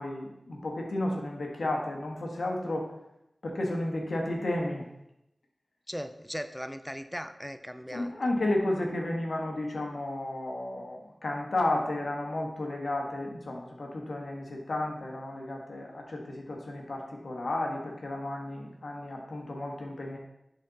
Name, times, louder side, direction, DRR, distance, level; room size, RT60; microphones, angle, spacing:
voice 1, 0.0-2.9 3.4-4.8 7.9-20.2, left 1 dB, 90° left, 0 dB, 1.5 m, -32 dB
voice 2, 5.9-8.1, equal, ahead, 10 dB, 0.4 m, -38 dB
11.0 x 4.2 x 4.1 m, 0.85 s
wide cardioid pair, 55°, 0 cm